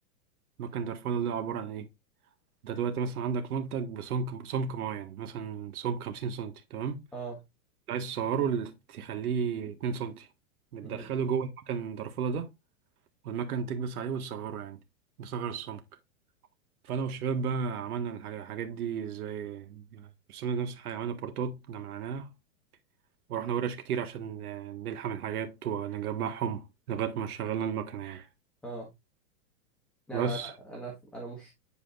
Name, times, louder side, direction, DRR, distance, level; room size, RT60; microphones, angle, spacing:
voice 1, 0.6-1.9 2.6-7.0 7.9-10.3 10.7-12.5 13.2-14.8 15.2-15.8 16.9-22.3 23.3-28.3 30.1-30.5, right 7 dB, 85° right, 1.7 m, -33 dB
voice 2, 30.1-31.5, right 3 dB, ahead, 1.4 m, -40 dB
10.0 x 4.8 x 2.5 m
supercardioid pair, 165°, 44 cm